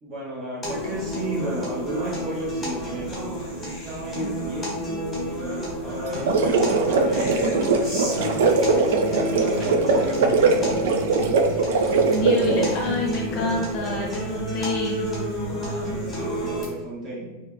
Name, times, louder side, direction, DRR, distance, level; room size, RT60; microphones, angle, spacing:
voice 1, 0.0-3.1 3.5-8.5 9.0-10.6 15.8-17.3, right 1 dB, 20° right, -5 dB, 0.8 m, -34 dB
sound 1, 0.6-16.6, equal, 10° left, 1.2 m, -30 dB
sound 2, 6.1-12.9, right 3 dB, 70° right, 0.4 m, -21 dB
voice 2, 12.0-15.1, left 1 dB, 30° left, -1 dB, 0.7 m, -27 dB
2.9 x 2.7 x 2.4 m, 1.2 s
supercardioid pair, 175°, 0 cm